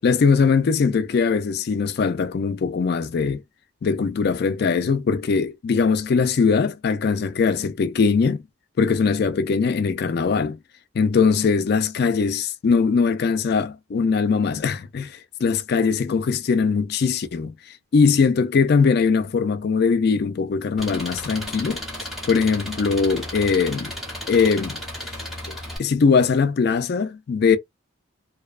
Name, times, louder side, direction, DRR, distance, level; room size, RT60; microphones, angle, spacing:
voice 1, 0.0-3.4 3.8-8.4 8.8-10.6 10.9-17.5 17.9-21.8 22.3-23.9 24.3-25.2 25.8-27.6, left 5 dB, 50° left, 0.3 m, -21 dB
Engine, 20.8-25.8, left 1 dB, ahead, 0.8 m, -34 dB
2.6 x 2.1 x 2.3 m
head